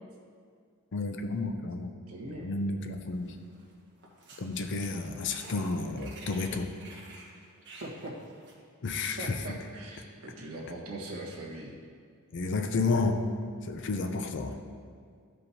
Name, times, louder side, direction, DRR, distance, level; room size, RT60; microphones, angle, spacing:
voice 1, 0.9-1.9 2.2-3.4 4.4-6.7 8.8-9.6 12.3-13.2 13.6-14.6, left 3 dB, 55° left, 6 dB, 0.6 m, -31 dB
voice 2, 2.1-2.5 7.8-8.1 9.2-11.7, right 1 dB, 70° right, -4 dB, 1.5 m, -41 dB
sound 1, 3.2-3.7 4.0-8.6, right 2 dB, 50° right, 1.3 m, -50 dB
13.0 x 5.4 x 2.8 m, 2.1 s
head